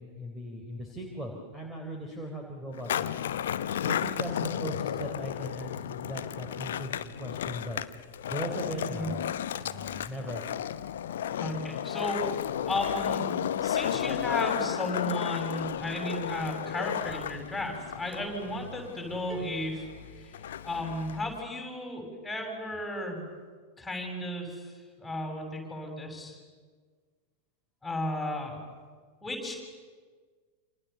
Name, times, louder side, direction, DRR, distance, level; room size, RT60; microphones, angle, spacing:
voice 1, 0.0-3.1 3.8-7.8 8.3-9.2 9.6-10.4, right 1 dB, 10° right, 1 dB, 3.9 m, -38 dB
Skateboard, 2.7-21.4, left 10 dB, 60° left, 0.8 m, -33 dB
voice 2, 11.4-12.3 12.7-19.8 20.1-20.3 20.6-23.2 23.8-26.4 27.8-28.7 29.2-29.6, left 1 dB, 5° left, 2 dB, 7.4 m, -34 dB
sound 1, 19.3-21.3, right 6 dB, 30° right, 2.8 m, -50 dB
28.5 x 27.0 x 7.1 m, 1.6 s
figure-of-eight pair, 90°, 0 cm